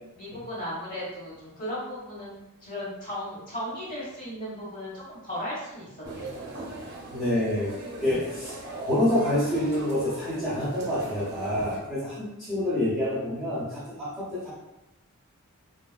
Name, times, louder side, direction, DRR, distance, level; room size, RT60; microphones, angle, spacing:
voice 1, 0.1-2.3 2.6-5.9 6.1-6.5 8.1-8.2, equal, 40° left, -8 dB, 1.4 m, -36 dB
sound 1, 6.0-11.8, right 2 dB, 50° right, 0.6 m, -40 dB
voice 2, 7.1-7.7 8.0-14.5, left 1 dB, ahead, -10 dB, 0.6 m, -27 dB
3.2 x 2.3 x 2.2 m, 0.95 s
head